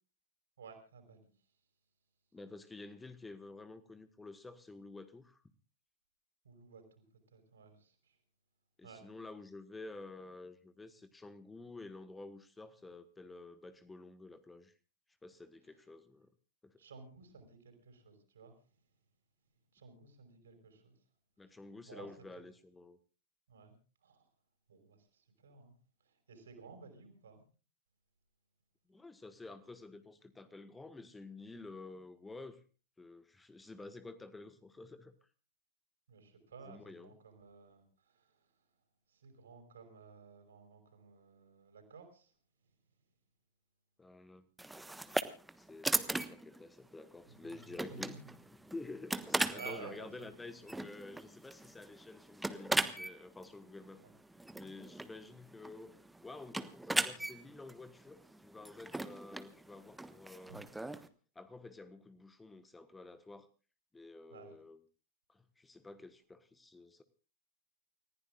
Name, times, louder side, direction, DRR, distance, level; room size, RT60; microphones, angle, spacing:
voice 1, 0.6-1.3 6.4-7.0 7.3-8.2 8.8-9.1 16.8-18.5 19.7-21.0 21.9-22.1 23.5-23.8 24.0-24.3 24.7-25.8 26.0-27.4 36.1-38.5 39.1-42.3 47.3-48.3 49.5-50.5 53.9-54.1 60.5-60.6 64.3-64.6, right 5 dB, 65° right, 6 dB, 5.4 m, -54 dB
voice 2, 2.3-5.4 8.8-14.7 15.2-16.3 16.6-16.8 21.4-23.0 28.9-32.6 33.0-35.1 36.7-37.1 44.0-44.5 45.6-48.2 48.7-54.0 54.5-60.6 61.3-63.5 63.9-64.8 65.3-67.0, left 3 dB, 10° left, 12 dB, 1.3 m, -50 dB
sound 1, 44.6-61.1, right 2 dB, 5° right, 1.2 m, -39 dB
29.5 x 15.5 x 2.4 m, 0.35 s
figure-of-eight pair, 90°, 0 cm